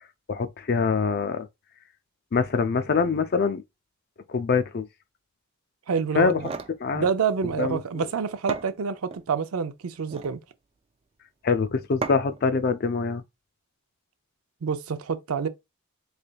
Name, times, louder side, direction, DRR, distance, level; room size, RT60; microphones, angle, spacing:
voice 1, 0.3-1.5 2.3-3.6 4.3-4.9 6.2-6.4 6.8-7.1 7.6-8.1 11.4-13.2, left 5 dB, 45° left, 0.4 m, -24 dB
voice 2, 5.9-6.5 6.9-10.4 14.6-15.5, right 6 dB, 80° right, 0.5 m, -27 dB
sound 1, 6.2-6.8 8.0-8.1 8.5-9.3 9.9-10.4 12.0-12.4, right 4 dB, 25° right, 0.3 m, -35 dB
3.8 x 3.3 x 2.3 m
head